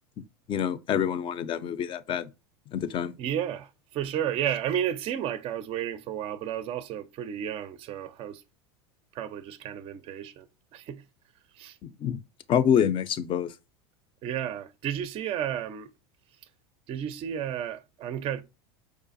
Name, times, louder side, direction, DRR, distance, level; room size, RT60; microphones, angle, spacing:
voice 1, 0.5-2.3 2.7-3.1 11.8-12.2 12.5-13.5, left 8 dB, 35° left, 0.4 m, -26 dB
voice 2, 3.2-8.4 9.1-10.5 10.7-11.0 11.6-11.8 14.2-15.9 16.9-18.4, right 10 dB, 40° right, 0.4 m, -32 dB
4.6 x 2.4 x 2.5 m
hypercardioid pair, 95°, 14 cm